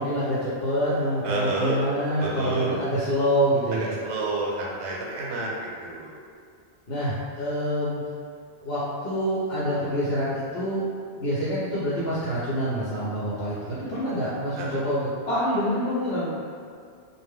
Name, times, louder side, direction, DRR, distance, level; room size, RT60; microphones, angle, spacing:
voice 1, 0.0-3.9 6.9-8.0 8.6-10.8 11.1-16.3, equal, 65° left, -10 dB, 0.8 m, -26 dB
voice 2, 1.2-1.8 2.2-2.8 3.7-6.1 14.6-14.8, right 2 dB, 80° right, -4 dB, 0.9 m, -30 dB
2.1 x 2.0 x 3.4 m, 2.2 s
omnidirectional pair, 1.2 m